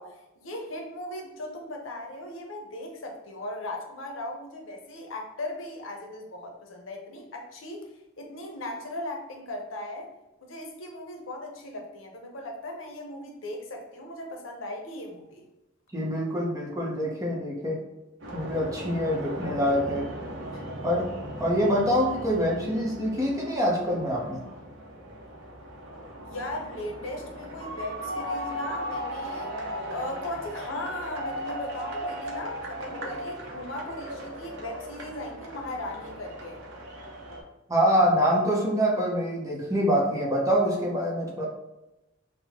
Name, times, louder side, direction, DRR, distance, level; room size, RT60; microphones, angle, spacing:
voice 1, 0.0-10.1 10.4-15.5 20.5-20.6 26.2-29.5 29.9-36.6, left 1 dB, 85° left, 2 dB, 0.7 m, -38 dB
voice 2, 15.9-17.8 18.3-20.1 20.8-21.1 21.4-24.4 37.7-41.5, equal, 15° right, -3 dB, 0.7 m, -25 dB
sound 1, 18.2-37.4, equal, 70° right, 0.8 m, -37 dB
3.5 x 2.1 x 3.5 m, 0.98 s
head